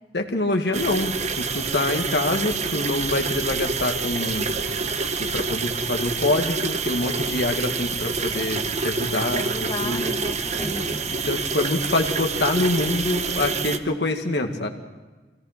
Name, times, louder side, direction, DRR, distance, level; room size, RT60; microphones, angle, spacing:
voice 1, 0.1-4.5 5.2-9.5 9.8-10.3 11.1-14.7, left 2 dB, 70° left, 3 dB, 2.0 m, -25 dB
sound 1, 0.7-13.8, right 4 dB, 40° right, 0.9 m, -27 dB
sound 2, 3.8-13.6, right 1 dB, 20° right, 6.9 m, -45 dB
voice 2, 9.3-11.0, left 1 dB, 25° left, 4 dB, 1.2 m, -34 dB
24.5 x 17.5 x 6.0 m, 1.2 s
head